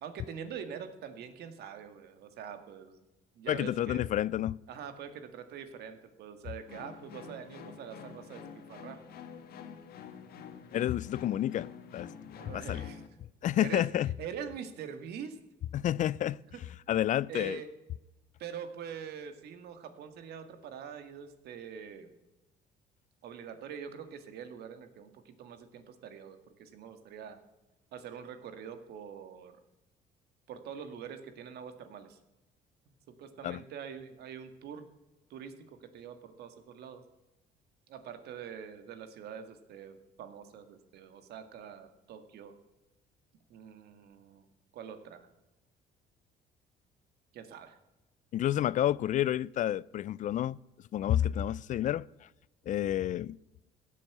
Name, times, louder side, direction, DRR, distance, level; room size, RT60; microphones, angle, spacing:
voice 1, 0.0-3.0 3.4-4.1 4.7-9.0 12.4-13.1 13.5-13.8 14.2-15.4 17.3-17.7 18.4-22.1 23.2-27.4 27.9-29.5 30.5-32.2 32.9-34.9 35.3-35.5 35.8-37.0 37.9-42.5 43.5-44.5 44.7-45.3 47.3-47.8, right 8 dB, 75° right, 1.9 m, -44 dB
voice 2, 3.5-4.6 10.7-12.1 12.5-12.8 13.4-14.1 15.7-16.4 16.9-17.6 33.4-33.6 48.3-50.6 50.9-52.1 52.7-53.4, left 12 dB, 50° left, 0.4 m, -29 dB
sound 1, 6.7-13.1, left 7 dB, 65° left, 1.7 m, -48 dB
16.5 x 7.5 x 8.1 m
cardioid pair, 110°, 17 cm